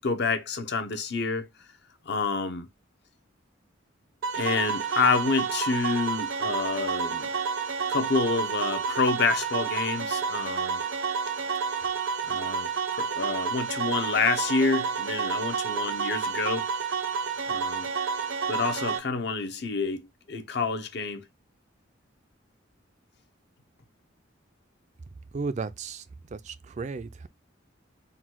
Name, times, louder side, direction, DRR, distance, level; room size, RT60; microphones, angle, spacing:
voice 1, 0.0-1.5 2.1-2.7 4.4-7.3 7.9-10.8 12.2-16.7 17.5-17.9 18.5-21.2, left 4 dB, 60° left, 0.7 m, -28 dB
sound 1, 4.2-19.0, right 6 dB, 75° right, 0.7 m, -30 dB
voice 2, 25.3-26.0 26.3-27.3, right 4 dB, 35° right, 0.3 m, -34 dB
3.9 x 2.3 x 4.4 m
head